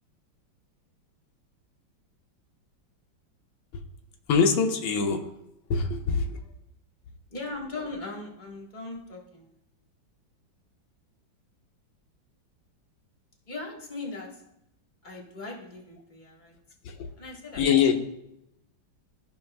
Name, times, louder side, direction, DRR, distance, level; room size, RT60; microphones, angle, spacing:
voice 1, 4.3-5.3 5.7-6.4 16.8-17.1 17.6-17.9, left 6 dB, 90° left, 4 dB, 1.6 m, -24 dB
voice 2, 7.3-9.5 13.5-14.4 15.0-16.6 17.2-17.7, left 3 dB, 25° left, -1 dB, 1.3 m, -39 dB
13.5 x 5.5 x 2.2 m, 0.83 s
omnidirectional pair, 2.1 m